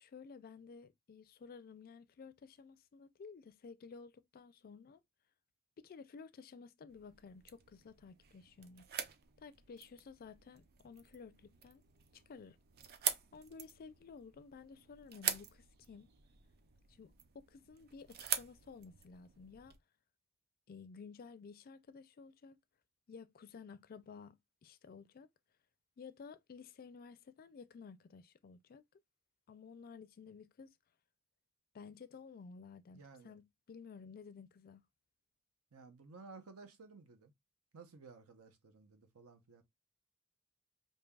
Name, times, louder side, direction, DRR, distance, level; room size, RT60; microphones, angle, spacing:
voice 1, 0.0-5.0 5.8-8.9 9.4-11.8 12.1-12.6 13.3-16.1 16.9-19.7 20.7-22.6 23.1-24.4 24.6-25.3 26.0-28.8 29.5-30.8 31.7-34.8, left 5 dB, 45° left, 0.4 m, -54 dB
sound 1, 6.9-19.8, right 8 dB, 45° right, 0.5 m, -45 dB
voice 2, 32.9-33.3 35.7-37.3 37.7-39.6, right 4 dB, 80° right, 0.7 m, -56 dB
5.2 x 2.7 x 2.2 m
head